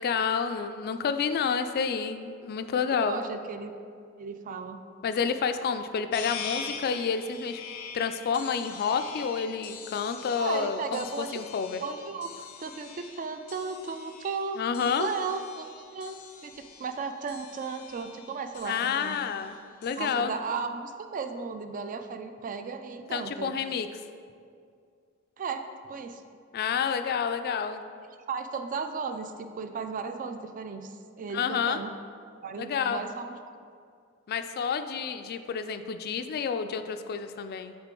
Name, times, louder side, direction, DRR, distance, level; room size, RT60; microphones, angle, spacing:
voice 1, 0.0-3.2 5.0-7.6 7.9-11.8 14.6-15.1 18.6-20.4 23.1-24.0 26.5-27.8 31.3-31.8 32.6-33.0 34.3-37.8, left 6 dB, 45° left, 9 dB, 0.3 m, -29 dB
voice 2, 3.0-3.7 4.2-4.8 10.4-11.5 11.8-15.7 15.9-16.2 16.4-19.2 20.0-23.5 25.4-26.2 28.3-31.9 32.4-33.4, right 5 dB, 40° right, 8 dB, 0.3 m, -35 dB
sound 1, 6.1-20.1, left 6 dB, 85° left, 0.6 m, -44 dB
8.0 x 3.7 x 3.8 m, 2.3 s
head